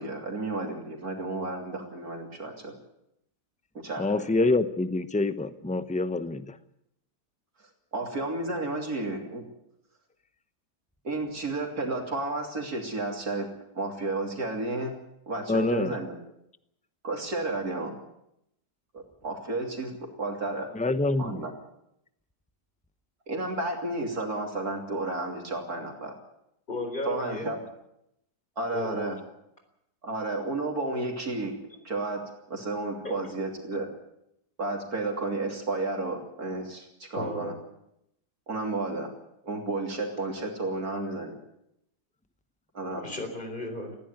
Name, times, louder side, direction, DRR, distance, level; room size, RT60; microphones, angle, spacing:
voice 1, 0.0-2.7 3.8-4.3 7.9-9.4 11.0-13.5 13.8-15.0 15.3-16.2 17.0-18.0 18.9-20.7 21.2-21.5 23.3-26.1 27.1-27.6 28.6-29.2 30.0-31.5 31.8-32.2 32.5-33.9 34.6-37.5 38.5-39.1 39.4-41.3 42.7-43.0, right 2 dB, 65° right, 1 dB, 3.5 m, -32 dB
voice 2, 4.0-6.6 15.5-16.0 20.7-21.4, left 2 dB, 5° left, 11 dB, 0.6 m, -26 dB
voice 3, 26.7-27.5 28.7-29.1 33.0-33.2 37.2-37.5 43.0-44.0, left 2 dB, 30° left, 6 dB, 4.4 m, -34 dB
19.5 x 15.5 x 9.5 m, 0.81 s
omnidirectional pair, 1.7 m